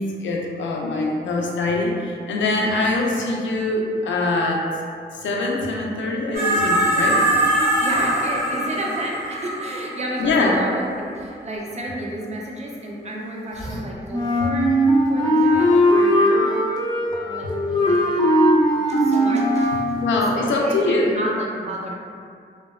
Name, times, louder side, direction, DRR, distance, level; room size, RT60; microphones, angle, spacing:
voice 1, 0.0-4.7 5.1-7.2 10.2-10.6 19.9-21.1, left 2 dB, 80° left, -1 dB, 0.4 m, -23 dB
sound 1, 6.3-10.8 13.6-13.8, right 1 dB, 90° right, 0.8 m, -22 dB
voice 2, 7.8-14.8 15.1-16.6 17.2-19.9 20.3-21.9, right 1 dB, 35° right, -2 dB, 0.5 m, -32 dB
Wind instrument woodwind instrument, 14.1-20.0, equal, 25° left, 0.5 m, -18 dB
2.7 x 2.1 x 2.2 m, 2.3 s
cardioid pair, 50°, 19 cm